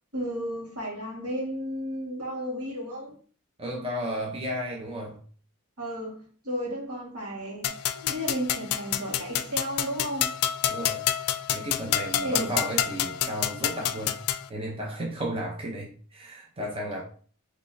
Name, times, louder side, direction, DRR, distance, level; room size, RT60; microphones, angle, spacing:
voice 1, 0.1-3.2 5.8-10.3 12.2-12.5, equal, 75° right, 1.8 m, -33 dB
voice 2, 3.6-5.2 10.6-11.1 11.5-14.2 14.5-17.0, equal, 25° right, 0.7 m, -33 dB
sound 1, 7.6-14.5, left 10 dB, 75° left, 0.4 m, -28 dB
5.2 x 3.1 x 2.7 m
head